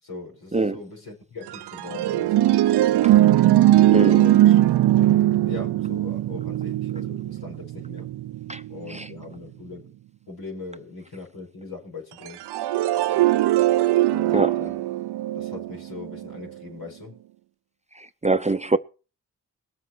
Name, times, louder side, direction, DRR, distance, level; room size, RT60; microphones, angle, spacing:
voice 1, 0.0-2.4 4.1-4.6 5.4-8.1 8.7-9.9 10.3-12.4 14.1-14.8 15.3-17.2, left 3 dB, 75° left, 5.6 m, -40 dB
sound 1, 1.5-9.1 12.3-16.4, right 14 dB, 85° right, 0.6 m, -20 dB
voice 2, 3.9-4.2 8.5-8.6 8.9-9.1 14.3-14.6 18.0-18.8, right 3 dB, 20° right, 0.6 m, -23 dB
20.5 x 7.8 x 4.5 m
supercardioid pair, 40°, 39 cm